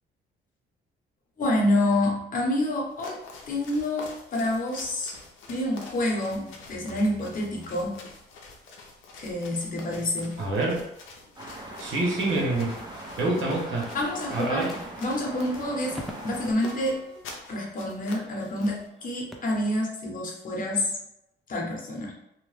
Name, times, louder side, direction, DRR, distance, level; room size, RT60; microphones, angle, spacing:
voice 1, 1.4-3.2 3.5-5.1 5.5-8.0 9.2-10.4 13.9-14.7 15.0-16.0 16.2-17.0 17.5-21.0 21.5-22.1, left 1 dB, 45° left, -2 dB, 0.9 m, -27 dB
sound 1, 2.9-18.9, left 3 dB, 80° left, 0.6 m, -47 dB
voice 2, 10.4-10.8 11.8-12.8 13.2-13.9 14.3-14.7, right 2 dB, 75° right, -2 dB, 1.0 m, -26 dB
sound 2, 11.3-16.5, right 1 dB, 20° right, 0.8 m, -41 dB
sound 3, 12.1-18.7 19.0-19.8, equal, ahead, 0.4 m, -46 dB
2.9 x 2.0 x 3.1 m, 0.82 s
cardioid pair, 90°, 20 cm